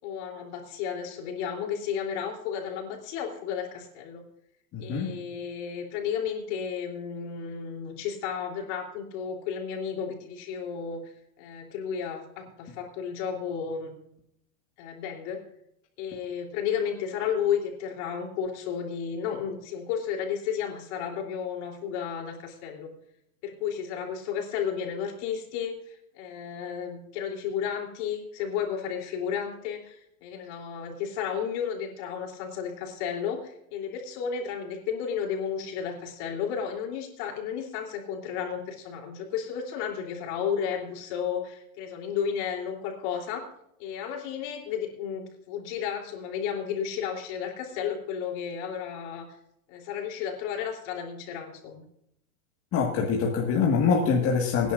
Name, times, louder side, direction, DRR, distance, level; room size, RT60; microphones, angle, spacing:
voice 1, 0.0-4.2 4.8-13.9 14.8-15.4 16.0-22.9 23.4-43.4 43.8-49.3 49.7-51.8, left 7 dB, 50° left, 1 dB, 3.6 m, -33 dB
voice 2, 4.7-5.1 52.7-54.7, left 5 dB, 30° left, -1 dB, 1.9 m, -24 dB
23.5 x 10.0 x 2.6 m, 0.76 s
supercardioid pair, 135°, 43 cm